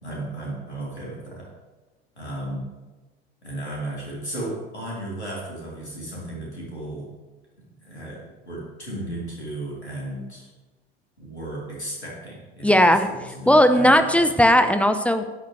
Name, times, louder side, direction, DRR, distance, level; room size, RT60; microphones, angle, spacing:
voice 1, 0.0-1.5 2.2-2.6 3.4-7.1 7.8-10.5 11.2-14.3, right 1 dB, 85° left, -4 dB, 3.5 m, -34 dB
voice 2, 12.6-13.1 13.5-15.3, equal, 5° left, 8 dB, 0.8 m, -17 dB
12.0 x 10.5 x 3.3 m, 1.2 s
figure-of-eight pair, 70°, 32 cm